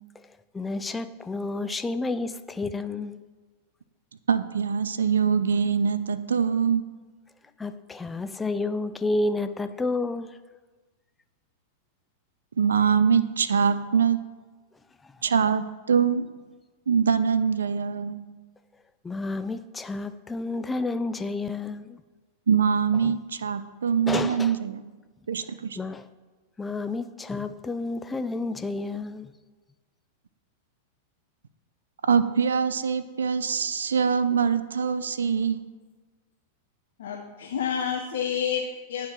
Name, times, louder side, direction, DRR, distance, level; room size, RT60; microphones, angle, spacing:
voice 1, 0.5-3.2 7.6-10.3 15.0-15.1 19.0-22.0 23.0-23.2 24.1-24.6 25.8-26.1 26.6-29.3, left 3 dB, 15° left, 0.3 m, -30 dB
voice 2, 4.3-6.8 12.6-14.2 15.2-16.2 16.9-18.2 22.5-24.8 25.3-25.8 32.1-35.6, right 6 dB, 80° right, 0.3 m, -23 dB
voice 3, 37.0-39.1, left 8 dB, 70° left, 0.6 m, -29 dB
10.5 x 3.6 x 3.0 m
hypercardioid pair, 100°, 0 cm